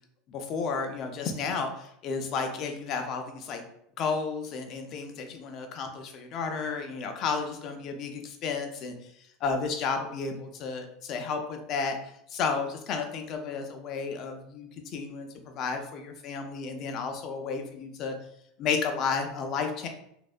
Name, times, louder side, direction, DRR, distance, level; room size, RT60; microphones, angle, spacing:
voice 1, 0.3-3.6 4.0-9.1 9.4-18.1 18.6-19.9, left 5 dB, 35° left, 4 dB, 0.4 m, -32 dB
2.6 x 2.2 x 2.3 m, 0.74 s
supercardioid pair, 160°, 0 cm